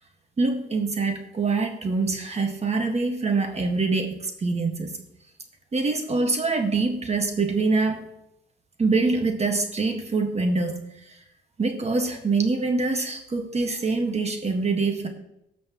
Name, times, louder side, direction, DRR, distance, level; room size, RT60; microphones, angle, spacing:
voice 1, 0.4-4.2 4.4-4.9 5.7-8.1 8.8-10.8 11.6-15.1, right 3 dB, 35° right, 4 dB, 1.8 m, -24 dB
17.5 x 6.3 x 3.1 m, 0.81 s
cardioid pair, 90°, 20 cm